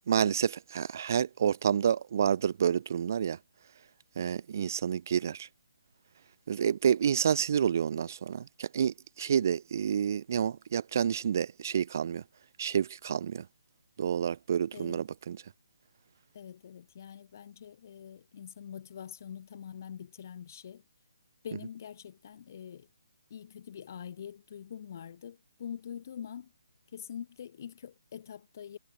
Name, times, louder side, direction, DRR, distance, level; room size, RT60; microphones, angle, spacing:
voice 1, 0.1-3.4 4.2-5.5 6.5-12.2 12.6-13.4 14.0-15.4, right 8 dB, 45° right, 1.3 m, -29 dB
voice 2, 14.7-15.0 16.3-20.8 21.4-22.9 23.3-26.5 26.9-28.8, left 8 dB, 45° left, 7.2 m, -44 dB
figure-of-eight pair, 140°, 2 cm